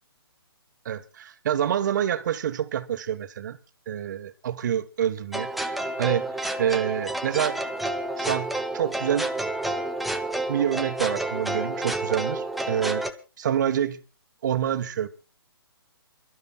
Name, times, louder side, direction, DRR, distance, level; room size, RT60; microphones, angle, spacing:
voice 1, 0.8-3.6 3.9-7.6 8.2-9.3 10.5-13.0 13.4-14.0 14.4-15.1, right 9 dB, 45° right, 1.3 m, -27 dB
sound 1, 5.3-13.1, right 1 dB, ahead, 0.6 m, -29 dB
28.5 x 12.5 x 2.4 m
hypercardioid pair, 150°, 13 cm